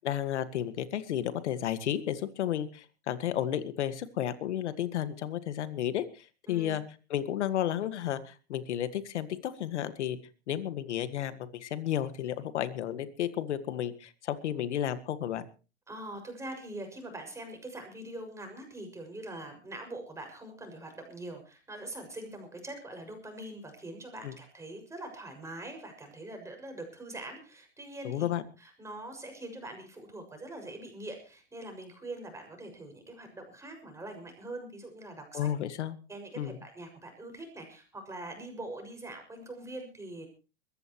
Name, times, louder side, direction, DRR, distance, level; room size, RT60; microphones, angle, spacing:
voice 1, 0.0-6.8 7.1-10.2 10.5-15.4 24.2-24.4 28.0-28.4 35.3-36.0 36.3-36.6, left 11 dB, 80° left, 12 dB, 1.9 m, -32 dB
voice 2, 15.9-28.3 28.6-35.5 36.1-40.3, right 1 dB, 10° right, 4 dB, 6.4 m, -43 dB
22.5 x 15.0 x 3.1 m, 0.35 s
hypercardioid pair, 130°, 34 cm